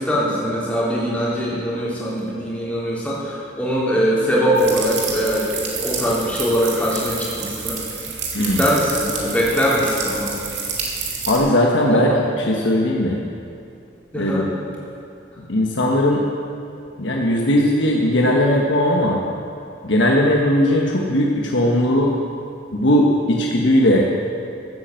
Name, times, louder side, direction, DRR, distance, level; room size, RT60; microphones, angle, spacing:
voice 1, 0.0-7.9 8.4-10.3 11.9-12.3 14.1-14.5, equal, 5° left, -7 dB, 3.3 m, -22 dB
sound 1, 4.5-11.4, right 5 dB, 75° right, 2.6 m, -29 dB
voice 2, 8.3-8.7 11.3-13.2 14.1-14.5 15.5-16.2 17.0-19.2 19.8-22.1 22.7-24.1, left 1 dB, 85° left, -1 dB, 1.3 m, -18 dB
14.5 x 8.9 x 7.7 m, 2.5 s
head